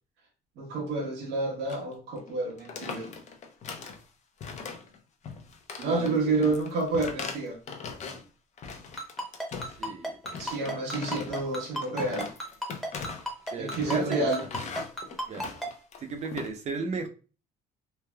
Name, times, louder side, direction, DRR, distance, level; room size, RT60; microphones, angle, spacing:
voice 1, 0.6-3.1 5.8-7.6 10.4-12.3 13.6-14.4, right 3 dB, 85° right, 1.0 m, -29 dB
sound 1, 1.7-1.9 2.2-2.3 2.6-4.0 4.4-5.0 5.2-8.3 8.6-9.9 10.2-16.5, left 5 dB, 45° left, 0.5 m, -40 dB
voice 2, 5.8-6.6 9.7-10.2 10.6-10.8 13.5-14.3 15.3-15.4 16.0-17.1, right 4 dB, 40° right, 0.5 m, -35 dB
Ringtone, 9.0-15.7, equal, ahead, 0.8 m, -32 dB
3.2 x 2.2 x 2.2 m
cardioid pair, 110°, 17 cm